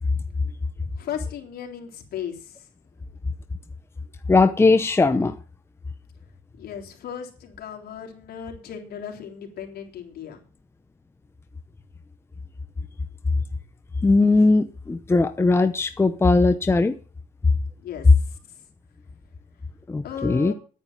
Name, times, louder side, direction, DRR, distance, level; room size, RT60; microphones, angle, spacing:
voice 1, 1.0-2.7 6.6-10.4 17.8-18.6 20.0-20.5, left 8 dB, 65° left, 3.6 m, -36 dB
voice 2, 4.3-5.3 14.0-16.9 19.9-20.5, left 3 dB, 15° left, 0.8 m, -19 dB
9.7 x 9.5 x 7.4 m
cardioid pair, 110°, 17 cm